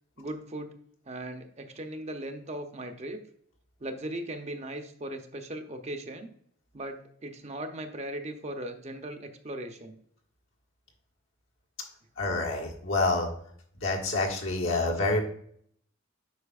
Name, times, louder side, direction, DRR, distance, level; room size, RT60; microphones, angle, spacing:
voice 1, 0.2-0.7 1.1-3.2 3.8-6.3 6.7-10.0, right 1 dB, 35° right, 6 dB, 0.6 m, -38 dB
voice 2, 12.2-13.3 13.8-15.2, left 2 dB, 75° left, -1 dB, 1.5 m, -27 dB
8.2 x 5.4 x 2.4 m, 0.64 s
head